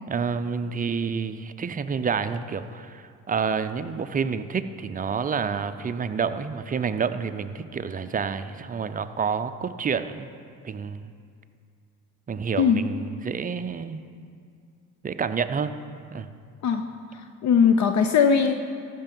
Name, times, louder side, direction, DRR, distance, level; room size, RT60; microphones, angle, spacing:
voice 1, 0.1-10.3 10.6-11.0 12.3-14.0 15.0-15.8 16.1-16.3, right 6 dB, 25° right, 10 dB, 0.5 m, -29 dB
voice 2, 17.1-18.5, left 6 dB, 50° left, 7 dB, 0.7 m, -20 dB
14.0 x 5.9 x 5.4 m, 2.3 s
supercardioid pair, 80°, 35 cm